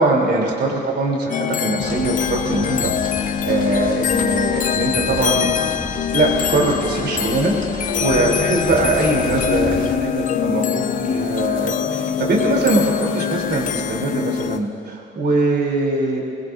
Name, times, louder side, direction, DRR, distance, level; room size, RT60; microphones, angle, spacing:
voice 1, 0.0-5.5 6.1-16.2, right 2 dB, 55° right, -2 dB, 3.6 m, -21 dB
sound 1, 1.3-14.6, left 9 dB, 40° left, 0.4 m, -23 dB
sound 2, 1.8-10.0, left 1 dB, 25° left, 2.1 m, -33 dB
sound 3, 8.7-14.6, left 4 dB, 75° left, 1.1 m, -34 dB
22.0 x 21.0 x 2.7 m, 2.4 s
cardioid pair, 90°, 20 cm